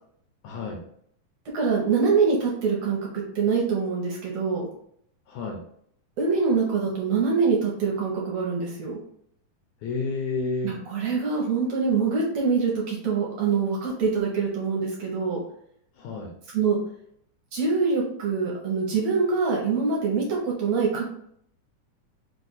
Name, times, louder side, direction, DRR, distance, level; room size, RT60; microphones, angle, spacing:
voice 1, 0.4-0.8 5.3-5.6 9.8-10.8 16.0-16.3, left 3 dB, 80° left, 1 dB, 1.8 m, -30 dB
voice 2, 1.5-4.7 6.2-9.0 10.6-15.4 16.5-16.8 17.5-21.1, right 5 dB, 65° right, -2 dB, 1.8 m, -24 dB
5.0 x 2.5 x 4.0 m, 0.68 s
omnidirectional pair, 3.7 m